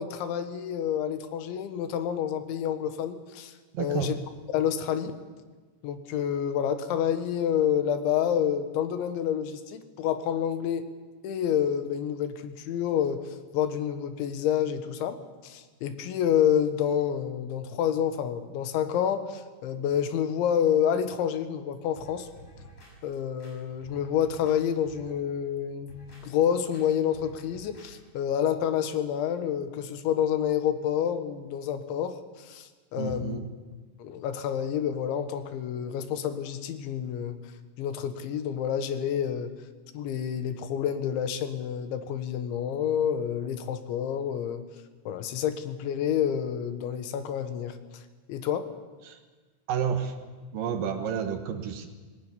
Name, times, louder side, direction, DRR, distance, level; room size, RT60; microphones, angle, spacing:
voice 1, 0.0-4.2 4.5-5.1 5.8-10.9 11.2-13.2 13.5-15.2 15.4-22.3 23.0-33.4 34.0-37.4 37.8-39.5 39.9-44.6 45.1-47.8 48.3-48.7, left 9 dB, 80° left, 9 dB, 3.6 m, -28 dB
voice 2, 3.7-4.2 33.0-33.4 49.0-49.2 49.7-50.1 50.5-51.9, right 7 dB, 65° right, 7 dB, 2.4 m, -30 dB
sound 1, 22.0-22.9 23.4-24.6 24.8-25.2 25.7-26.2 26.7-26.8 27.1-27.9 28.3-28.4, left 1 dB, 35° left, 7.4 m, -51 dB
18.5 x 18.0 x 9.7 m, 1.3 s
omnidirectional pair, 5.3 m